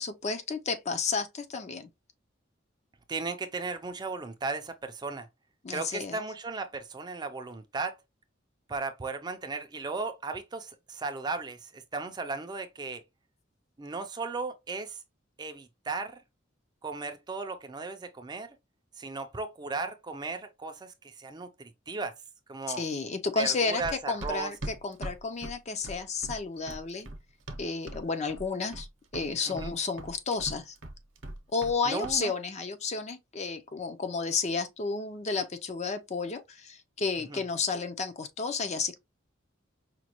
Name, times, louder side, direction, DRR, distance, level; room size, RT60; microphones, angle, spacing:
voice 1, 0.0-1.9 5.6-6.2 22.7-27.1 27.6-28.9 29.1-30.7 31.5-39.0, left 4 dB, 35° left, 0.5 m, -32 dB
voice 2, 3.1-5.3 5.7-8.0 8.7-13.0 13.8-15.0 15.4-16.2 16.8-18.5 19.0-22.1 22.5-22.8 23.4-24.5 29.5-29.7 31.9-32.3 37.3-37.4, right 3 dB, 20° right, 0.4 m, -36 dB
Run, 23.8-28.0 28.3-28.9 29.1-31.8 32.0-32.2, right 1 dB, 70° right, 0.8 m, -40 dB
5.0 x 2.2 x 2.9 m
head